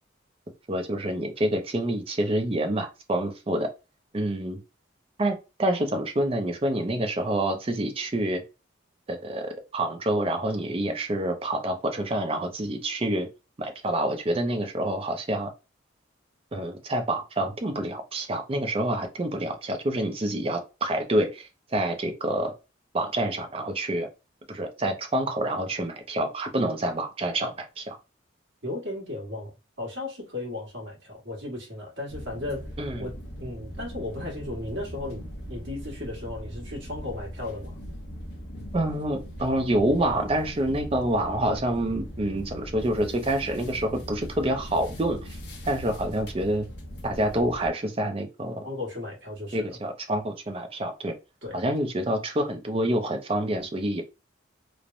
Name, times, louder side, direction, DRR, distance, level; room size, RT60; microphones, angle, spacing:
voice 1, 0.7-3.7 4.1-4.6 5.2-8.4 9.1-13.3 13.6-15.5 16.5-22.5 22.9-24.1 24.5-28.0 32.8-33.1 38.7-45.2 45.7-46.7 47.0-48.7 49.5-51.1 51.5-54.0, right 1 dB, 30° right, 0.4 m, -27 dB
voice 2, 28.6-29.5 29.8-32.7 33.0-35.2 35.5-37.8 48.6-49.8 51.4-51.6, left 2 dB, 60° right, 1.3 m, -35 dB
sound 1, 32.1-47.7, equal, 55° left, 0.7 m, -40 dB
3.2 x 2.1 x 2.5 m
head